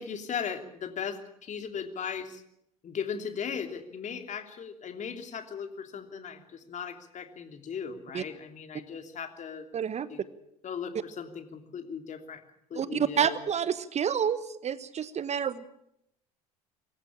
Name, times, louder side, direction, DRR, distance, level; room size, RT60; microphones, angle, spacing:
voice 1, 0.0-2.4 2.8-9.7 10.1-10.2 10.6-12.4 12.7-13.4, left 7 dB, 40° left, 7 dB, 2.9 m, -37 dB
voice 2, 9.7-10.1 12.7-15.6, right 8 dB, 35° right, 15 dB, 1.2 m, -29 dB
24.5 x 14.5 x 8.7 m, 0.77 s
hypercardioid pair, 70°, 19 cm